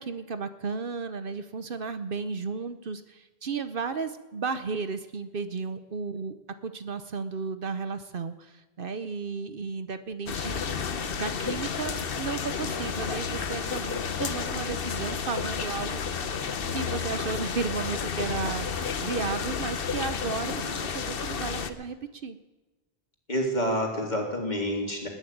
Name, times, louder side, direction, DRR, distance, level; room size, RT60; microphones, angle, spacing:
voice 1, 0.0-6.4 6.6-10.7 11.2-22.4, right 5 dB, 60° right, 11 dB, 1.0 m, -34 dB
sound 1, 10.3-21.7, left 6 dB, 65° left, 1.1 m, -31 dB
voice 2, 20.4-20.8 23.3-25.1, equal, 45° left, 0 dB, 3.5 m, -29 dB
20.5 x 7.3 x 9.3 m, 1.2 s
omnidirectional pair, 1.1 m